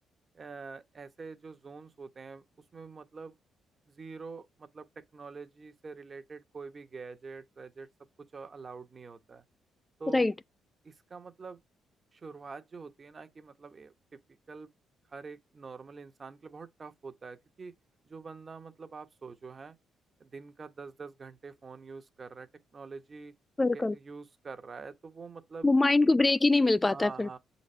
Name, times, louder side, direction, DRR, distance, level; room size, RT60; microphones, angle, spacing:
voice 1, 0.3-2.4 2.7-3.4 3.9-4.9 5.1-7.9 8.3-9.4 10.0-10.2 10.8-11.6 12.1-13.9 14.5-14.7 15.1-17.7 18.0-19.8 20.2-23.3 23.7-25.7 26.9-27.4, right 4 dB, 35° right, 1.1 m, -45 dB
voice 2, 23.6-23.9 25.6-27.3, left 2 dB, 20° left, 0.3 m, -23 dB
7.2 x 4.1 x 3.2 m
cardioid pair, 90°, 0 cm